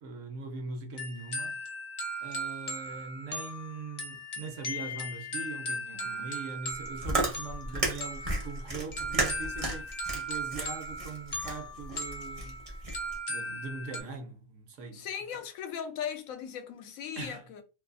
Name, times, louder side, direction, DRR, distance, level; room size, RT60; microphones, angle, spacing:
voice 1, 0.0-1.6 2.2-12.6 13.3-15.1 17.2-17.4, right 4 dB, 65° right, 0.9 m, -41 dB
sound 1, 1.0-14.0, equal, 60° left, 0.4 m, -38 dB
voice 2, 5.9-6.3 14.9-17.6, left 8 dB, 80° left, 1.0 m, -38 dB
Chewing mastication, 6.7-13.2, right 2 dB, 35° right, 0.7 m, -34 dB
2.6 x 2.3 x 2.5 m
omnidirectional pair, 1.5 m